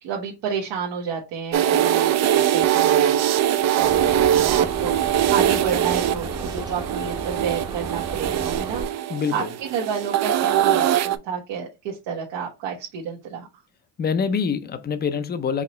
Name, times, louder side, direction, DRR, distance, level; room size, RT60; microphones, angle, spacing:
voice 1, 0.0-5.0 5.3-9.1 9.3-9.4 9.7-13.5, right 7 dB, 80° right, 1.1 m, -30 dB
sound 1, 1.5-11.2, right 11 dB, 40° right, 0.4 m, -22 dB
sound 2, 3.8-8.9, right 2 dB, 10° right, 0.7 m, -34 dB
voice 2, 9.1-9.5 14.0-15.6, left 6 dB, 25° left, 0.5 m, -25 dB
4.8 x 2.8 x 3.1 m
cardioid pair, 130°, 43 cm